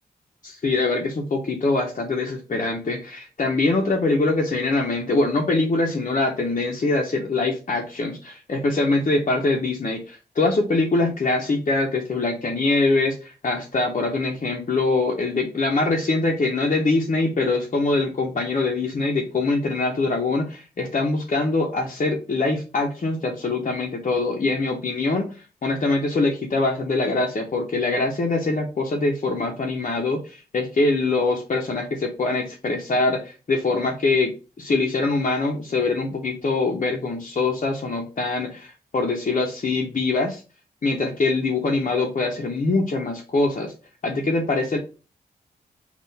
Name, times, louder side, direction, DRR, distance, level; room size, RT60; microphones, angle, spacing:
voice 1, 0.4-25.3 25.6-34.3 34.6-40.4 40.8-43.7 44.0-44.8, left 3 dB, 50° left, 0 dB, 0.8 m, -23 dB
3.7 x 2.4 x 4.0 m, 0.34 s
cardioid pair, 50°, 17 cm